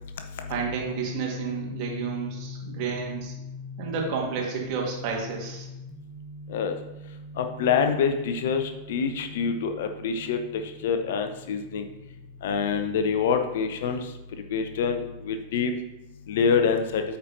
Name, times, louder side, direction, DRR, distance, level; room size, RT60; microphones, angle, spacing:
voice 1, 0.5-3.3 3.8-5.7, right 6 dB, 45° right, -1 dB, 2.1 m, -31 dB
sound 1, 0.8-14.5, left 4 dB, 30° left, 1.4 m, -42 dB
voice 2, 7.4-11.9 12.4-14.1 14.5-15.7 16.3-17.0, left 6 dB, 55° left, 6 dB, 0.7 m, -26 dB
8.3 x 4.5 x 4.0 m, 0.95 s
figure-of-eight pair, 90°, 0 cm